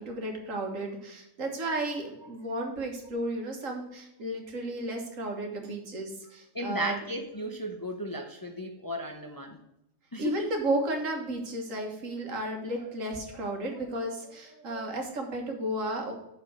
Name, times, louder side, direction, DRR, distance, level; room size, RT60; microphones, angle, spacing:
voice 1, 0.0-7.0 10.2-16.1, right 1 dB, 80° right, 2 dB, 1.8 m, -33 dB
voice 2, 6.5-9.6 10.1-10.5, equal, 25° left, 4 dB, 0.5 m, -34 dB
6.2 x 5.0 x 6.0 m, 0.87 s
omnidirectional pair, 1.3 m